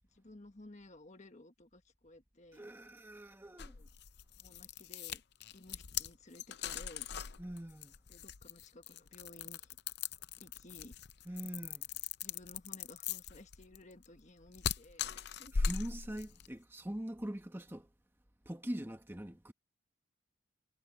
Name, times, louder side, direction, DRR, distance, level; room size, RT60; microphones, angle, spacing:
voice 1, 0.1-2.6 3.7-3.9 4.4-5.2 5.5-7.1 8.1-9.8 10.4-10.9 12.2-15.5, left 1 dB, 35° left, 1.5 m, -56 dB
voice 2, 2.5-3.8 7.4-8.0 11.2-11.9 15.5-17.9 18.4-19.5, right 1 dB, 10° right, 1.1 m, -43 dB
sound 1, 3.6-16.5, left 6 dB, 55° left, 0.6 m, -40 dB
head